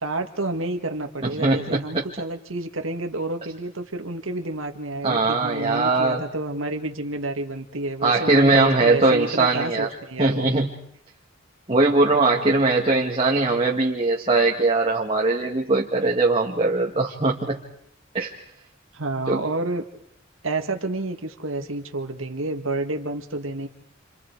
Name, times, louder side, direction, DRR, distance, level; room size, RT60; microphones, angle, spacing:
voice 1, 0.0-10.5 12.1-12.6 18.9-19.8 20.4-23.7, right 2 dB, 75° right, 5 dB, 2.1 m, -29 dB
voice 2, 1.2-2.0 5.0-6.3 8.0-9.9 10.2-10.7 11.7-17.6 18.1-18.3 19.3-19.4, right 3 dB, 30° right, -1 dB, 1.9 m, -20 dB
29.5 x 27.0 x 4.8 m, 0.68 s
head